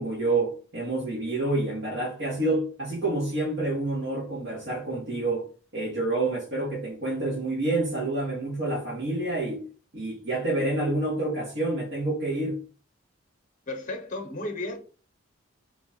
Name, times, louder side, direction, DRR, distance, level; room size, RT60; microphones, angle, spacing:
voice 1, 0.0-9.6 9.9-12.6, right 2 dB, 65° right, 1.4 m, -28 dB
voice 2, 13.7-14.8, left 2 dB, 40° left, 0.8 m, -33 dB
3.0 x 2.4 x 4.1 m
head